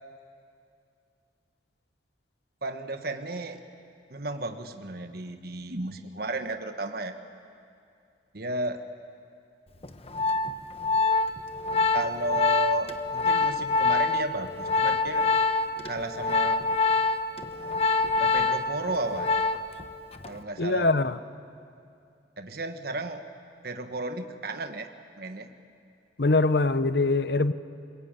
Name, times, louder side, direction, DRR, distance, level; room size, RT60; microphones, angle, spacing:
voice 1, 2.6-3.6 4.1-7.1 8.3-8.8 11.9-15.3 15.8-16.6 18.2-19.3 20.2-20.9 22.4-23.2 23.6-24.9 25.2-25.5, right 2 dB, 55° right, 7 dB, 1.3 m, -33 dB
Organ, 9.8-19.8 20.1-20.4, left 3 dB, 35° left, 1.1 m, -25 dB
voice 2, 20.6-21.2 26.2-27.5, left 3 dB, 60° left, 12 dB, 0.9 m, -23 dB
29.0 x 21.5 x 9.0 m, 2.5 s
head